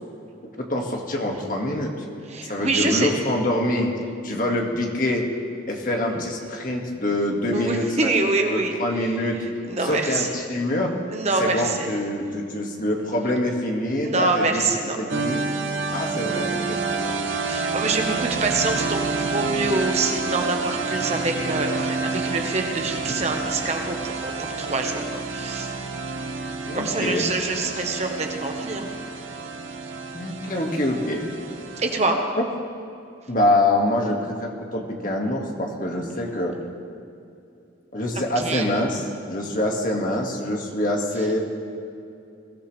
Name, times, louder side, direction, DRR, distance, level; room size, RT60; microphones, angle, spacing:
voice 1, 0.6-1.9 2.4-3.9 4.2-5.2 5.7-8.1 8.5-9.4 9.8-10.9 11.4-14.7 14.9-15.4 15.9-16.8 26.7-27.3 30.1-31.2 32.4-32.5 33.3-36.6 37.9-39.0 39.3-41.4, left 1 dB, 45° left, 0 dB, 2.0 m, -25 dB
voice 2, 2.3-3.1 7.5-8.8 9.7-10.4 11.1-11.9 14.0-15.0 16.8-25.7 26.7-28.9 31.8-32.2 38.1-38.7, right 3 dB, 35° right, 3 dB, 1.2 m, -26 dB
sound 1, 15.1-32.0, right 4 dB, 85° right, 1.0 m, -29 dB
23.0 x 16.0 x 3.4 m, 2.6 s
head